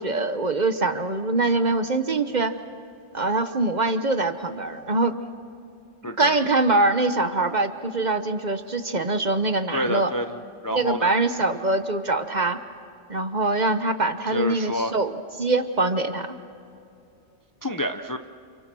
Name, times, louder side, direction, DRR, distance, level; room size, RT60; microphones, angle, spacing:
voice 1, 0.0-2.6 3.1-5.1 6.2-10.1 10.7-12.6 13.1-15.1 15.4-16.3, right 2 dB, 35° right, 9 dB, 1.1 m, -23 dB
voice 2, 6.0-6.3 9.7-11.1 14.3-15.0 17.6-18.2, equal, 20° left, 7 dB, 0.6 m, -28 dB
30.0 x 29.5 x 6.2 m, 2.5 s
omnidirectional pair, 1.3 m